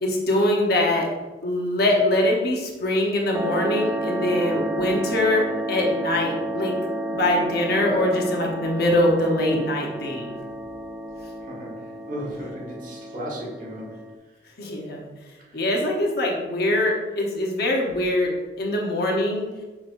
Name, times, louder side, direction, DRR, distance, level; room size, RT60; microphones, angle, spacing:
voice 1, 0.0-1.1 1.4-6.8 7.1-10.3 14.6-15.1 15.5-19.5, left 1 dB, 60° left, -1 dB, 1.0 m, -23 dB
sound 1, 3.3-14.2, right 1 dB, 10° right, 0.4 m, -31 dB
voice 2, 11.4-13.9 15.5-15.6, equal, 50° right, -4 dB, 1.6 m, -35 dB
6.2 x 5.9 x 2.6 m, 1.2 s
head